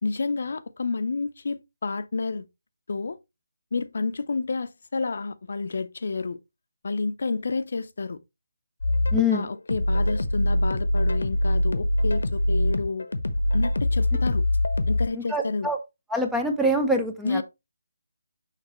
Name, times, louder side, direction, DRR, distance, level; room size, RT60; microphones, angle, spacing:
voice 1, 0.0-2.5 2.9-3.2 3.7-6.4 6.8-8.2 9.1-13.1 13.5-14.4 14.9-15.7 17.2-17.4, left 4 dB, 55° left, 0.6 m, -30 dB
sound 1, 8.8-15.1, left 1 dB, 90° left, 1.0 m, -24 dB
voice 2, 9.1-9.4 15.1-15.8 16.1-17.4, left 1 dB, ahead, 0.4 m, -24 dB
6.6 x 5.2 x 3.0 m
hypercardioid pair, 170°, 0 cm